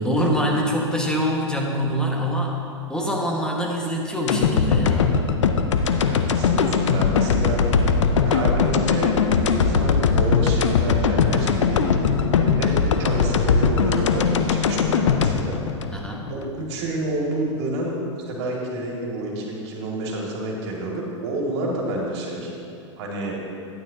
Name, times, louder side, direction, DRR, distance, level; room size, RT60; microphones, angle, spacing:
voice 1, 0.0-2.6 2.9-5.2 15.9-16.2, equal, 5° left, -1 dB, 1.5 m, -24 dB
sound 1, 4.3-16.5 16.9-17.0, left 5 dB, 80° left, 0.6 m, -20 dB
voice 2, 6.0-7.6 8.2-15.6 16.3-17.9 18.3-22.5 23.0-23.4, right 1 dB, 60° right, -2 dB, 2.2 m, -29 dB
11.5 x 9.4 x 2.8 m, 2.5 s
hypercardioid pair, 105°, 15 cm